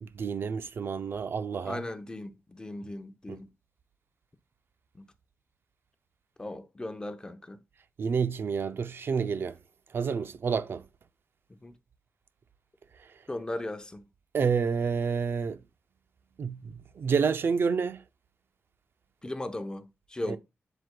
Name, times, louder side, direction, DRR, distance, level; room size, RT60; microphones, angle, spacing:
voice 1, 0.0-1.8 3.3-3.4 8.0-9.6 9.9-10.8 13.0-13.2 14.3-15.6 16.4-18.0 20.2-20.4, right 6 dB, 55° right, 0.5 m, -29 dB
voice 2, 1.6-3.5 4.9-5.1 6.4-7.6 11.6-11.7 13.3-14.0 19.2-20.4, left 1 dB, 20° left, 0.7 m, -37 dB
7.8 x 7.6 x 2.2 m
wide cardioid pair, 150°, 5 cm